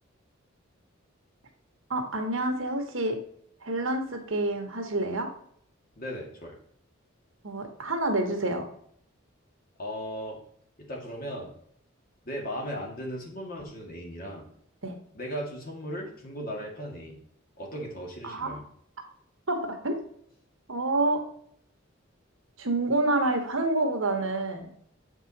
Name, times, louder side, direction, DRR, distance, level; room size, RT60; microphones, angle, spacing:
voice 1, 1.9-3.2 3.6-5.3 7.4-8.6 14.8-15.0 18.2-18.5 19.5-19.9 20.7-21.2 22.6-24.7, right 2 dB, 70° right, 4 dB, 1.5 m, -28 dB
voice 2, 6.0-6.5 9.8-10.4 10.8-11.5 12.3-14.5 15.1-17.2 17.6-18.6, equal, 45° left, -1 dB, 2.2 m, -37 dB
7.7 x 5.3 x 4.2 m, 0.65 s
head